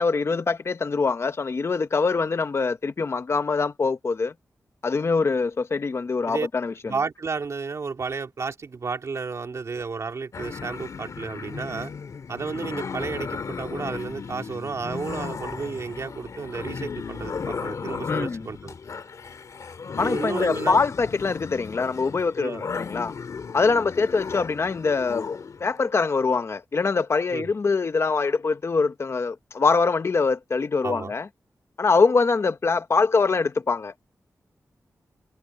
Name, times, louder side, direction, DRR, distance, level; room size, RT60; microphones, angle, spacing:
voice 1, 0.0-4.3 4.8-6.9 18.1-18.5 20.0-23.1 23.5-25.3 25.6-31.3 31.8-33.9, left 4 dB, 45° left, 1.0 m, -23 dB
voice 2, 6.8-11.9 12.3-18.7 20.0-20.8 22.4-22.6 27.3-27.5 30.8-31.1, right 4 dB, 55° right, 2.6 m, -32 dB
sound 1, 10.3-25.7, left 5 dB, 65° left, 2.3 m, -35 dB
wide cardioid pair, 145°, 6 cm